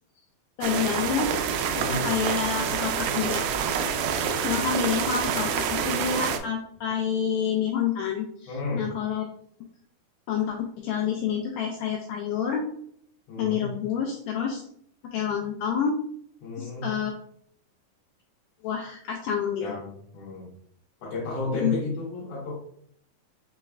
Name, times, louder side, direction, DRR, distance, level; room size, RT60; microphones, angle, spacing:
voice 1, 0.6-1.3 1.8-3.4 4.4-9.2 10.3-12.7 13.4-14.6 15.1-16.0 16.6-17.1 18.6-19.8 21.5-21.8, left 7 dB, 85° left, 1 dB, 1.9 m, -28 dB
sound 1, 0.6-6.4, right 7 dB, 90° right, 1.8 m, -27 dB
voice 2, 1.7-2.0 8.5-8.8 13.3-13.7 16.4-16.8 19.6-20.5 21.0-22.5, left 3 dB, 65° left, -9 dB, 2.6 m, -32 dB
5.7 x 3.1 x 2.3 m, 0.65 s
omnidirectional pair, 4.2 m